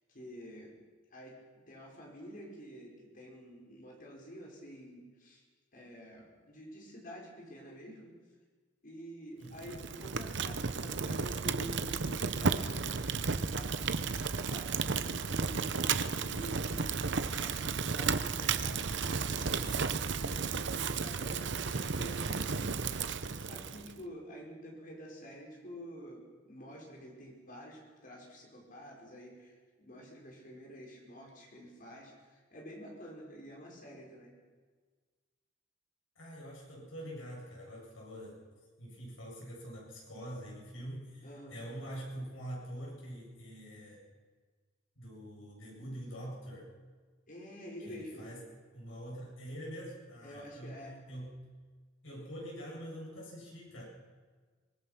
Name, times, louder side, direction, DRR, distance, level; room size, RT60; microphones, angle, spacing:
voice 1, 0.1-0.7 1.1-1.4 1.7-5.4 5.7-8.1 8.8-17.0 17.4-34.3 41.2-41.6 47.3-48.3 50.2-51.0, equal, 45° left, -1 dB, 5.8 m, -49 dB
voice 2, 9.4-9.8 36.2-38.4 38.8-44.0 45.0-46.7 47.9-48.4 48.7-51.4 52.0-53.8, equal, 80° left, -3 dB, 8.0 m, -45 dB
Fire, 9.5-23.9, right 5 dB, 60° right, 0.9 m, -33 dB
25.5 x 19.5 x 6.1 m, 1.5 s
head